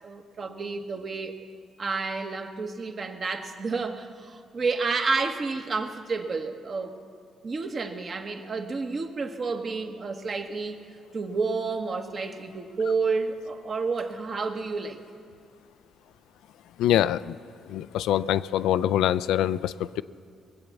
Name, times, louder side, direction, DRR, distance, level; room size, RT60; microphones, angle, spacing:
voice 1, 0.0-1.3 1.8-6.9 7.4-10.8 11.1-15.0, right 4 dB, 45° right, 5 dB, 1.2 m, -30 dB
voice 2, 16.8-17.4 17.7-20.0, left 11 dB, 90° left, 15 dB, 0.3 m, -24 dB
21.0 x 8.1 x 7.1 m, 2.3 s
cardioid pair, 90°, 0 cm